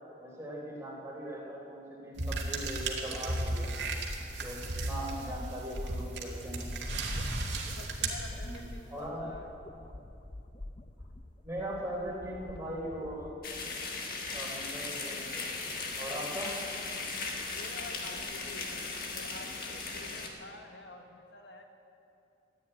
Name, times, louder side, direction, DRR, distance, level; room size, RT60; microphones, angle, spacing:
voice 1, 0.2-3.7 4.4-6.6 8.4-8.6 8.9-9.3 11.4-13.3 14.3-15.5 16.0-16.5, right 1 dB, 15° right, -4 dB, 3.6 m, -40 dB
sound 1, 2.2-8.8, right 2 dB, 75° right, 2.1 m, -35 dB
sound 2, 2.5-13.3, left 1 dB, 30° left, 0.5 m, -45 dB
voice 2, 7.7-9.5 17.5-21.6, left 2 dB, 70° left, 4 dB, 1.2 m, -49 dB
sound 3, 13.4-20.3, left 3 dB, 50° left, 1.6 m, -37 dB
14.5 x 9.4 x 9.7 m, 2.7 s
head